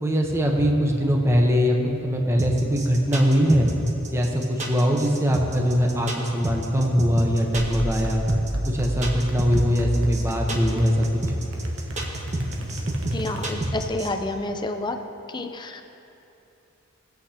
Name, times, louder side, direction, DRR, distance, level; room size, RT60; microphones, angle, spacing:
voice 1, 0.0-1.8 2.0-3.7 4.1-8.2 8.7-11.1, equal, 15° right, 0 dB, 1.0 m, -21 dB
sound 1, 2.4-14.1, right 1 dB, 35° right, 1.3 m, -29 dB
sound 2, 7.5-13.9, right 1 dB, 75° right, 1.2 m, -31 dB
voice 2, 13.1-15.0 15.3-15.8, left 2 dB, 20° left, 6 dB, 0.6 m, -29 dB
19.5 x 8.2 x 2.9 m, 2.8 s
head